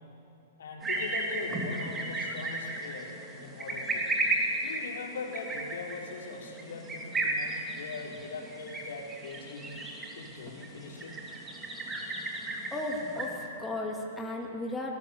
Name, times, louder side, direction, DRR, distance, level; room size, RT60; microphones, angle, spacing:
voice 1, 0.6-4.2 4.6-9.8 10.2-11.3, left 4 dB, 75° left, 0 dB, 4.1 m, -41 dB
sound 1, 0.8-13.5, right 2 dB, 15° right, 2.9 m, -35 dB
voice 2, 12.7-15.0, left 2 dB, 10° left, -1 dB, 2.6 m, -35 dB
20.5 x 18.0 x 7.2 m, 2.8 s
hypercardioid pair, 135°, 0 cm